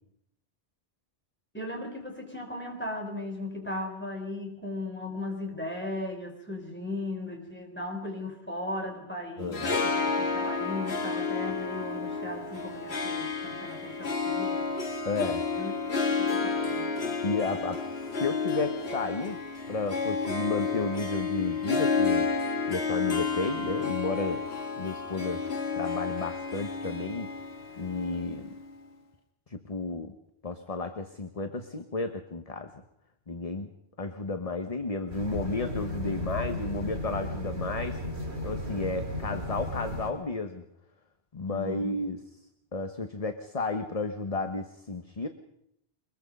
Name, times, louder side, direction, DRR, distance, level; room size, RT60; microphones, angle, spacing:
voice 1, 1.5-14.7 15.2-15.7 16.2-17.1 41.5-42.0, left 2 dB, 10° left, 2 dB, 4.2 m, -37 dB
Harp, 9.4-28.8, left 4 dB, 70° left, 2.0 m, -31 dB
voice 2, 9.4-9.7 15.0-15.5 17.2-17.8 18.2-19.4 19.7-22.3 22.7-24.4 24.8-25.4 25.7-27.3 27.8-28.5 29.5-30.1 30.4-32.8 33.3-33.7 34.0-38.0 38.4-40.6 41.3-42.2 42.7-45.3, left 3 dB, 35° left, 7 dB, 1.1 m, -32 dB
sound 1, 35.1-40.1, left 1 dB, 75° right, 4.3 m, -35 dB
23.5 x 21.0 x 5.4 m, 0.76 s
omnidirectional pair, 1.1 m